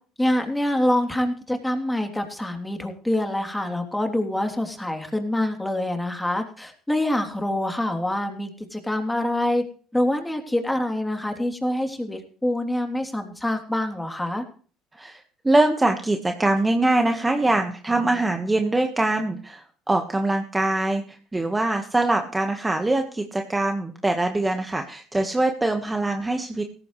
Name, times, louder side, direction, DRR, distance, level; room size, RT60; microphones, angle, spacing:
voice 1, 0.2-9.6 9.9-14.4, left 1 dB, 5° left, 4 dB, 3.1 m, -25 dB
voice 2, 14.9-26.6, right 2 dB, 15° right, 4 dB, 1.5 m, -23 dB
17.0 x 14.5 x 3.3 m, 0.42 s
supercardioid pair, 85°, 0 cm